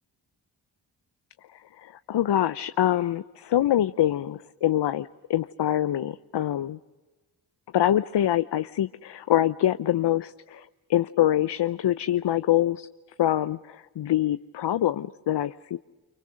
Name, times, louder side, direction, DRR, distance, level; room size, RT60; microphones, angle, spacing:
voice 1, 1.5-6.8 7.7-12.9 13.2-15.8, left 12 dB, 60° left, 12 dB, 0.7 m, -25 dB
30.0 x 25.0 x 6.4 m, 1.2 s
supercardioid pair, 45°, 46 cm